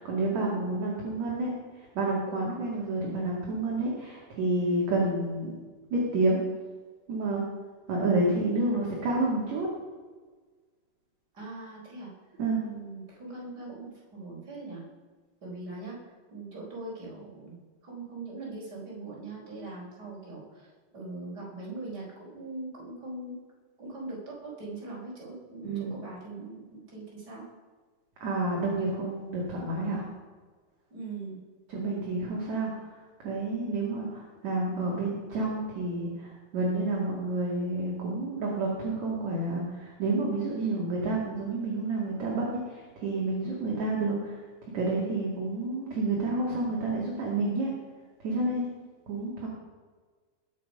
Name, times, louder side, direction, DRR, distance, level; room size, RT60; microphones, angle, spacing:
voice 1, 0.0-5.5 5.9-6.4 7.1-7.4 7.9-9.7 12.4-12.6 25.6-25.9 28.2-30.0 31.7-44.5 44.7-47.7 48.2-48.7 49.1-49.5, right 2 dB, 50° right, -4 dB, 3.3 m, -29 dB
voice 2, 11.3-12.1 12.6-14.8 15.4-16.0 16.3-20.7 20.9-23.4 23.8-27.4 30.9-31.4, right 2 dB, 25° right, -5 dB, 5.0 m, -41 dB
21.0 x 8.5 x 5.4 m, 1.4 s
omnidirectional pair, 4.5 m